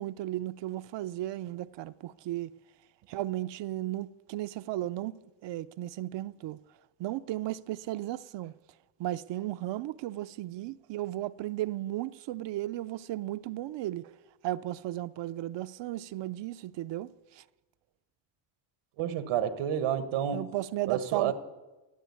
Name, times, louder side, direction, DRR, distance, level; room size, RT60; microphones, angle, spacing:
voice 1, 0.0-2.5 3.1-6.6 7.0-8.5 9.0-14.0 14.4-17.4 19.2-19.3 20.3-21.3, right 15 dB, 60° right, 0.6 m, -35 dB
voice 2, 19.0-20.5 20.9-21.3, right 9 dB, 90° right, 1.4 m, -30 dB
15.0 x 7.9 x 9.6 m
cardioid pair, 120°, 49 cm